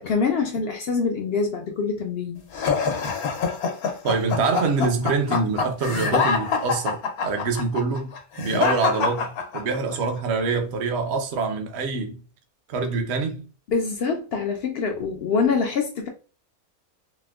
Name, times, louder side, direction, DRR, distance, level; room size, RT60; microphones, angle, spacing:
voice 1, 0.0-2.4 13.7-16.1, left 5 dB, 70° left, 0.6 m, -25 dB
sound 1, 2.5-10.0, left 5 dB, 90° left, 1.2 m, -25 dB
voice 2, 4.0-8.1 8.4-12.2 12.7-13.4, right 4 dB, 55° right, 0.8 m, -25 dB
4.3 x 2.1 x 2.2 m
omnidirectional pair, 1.5 m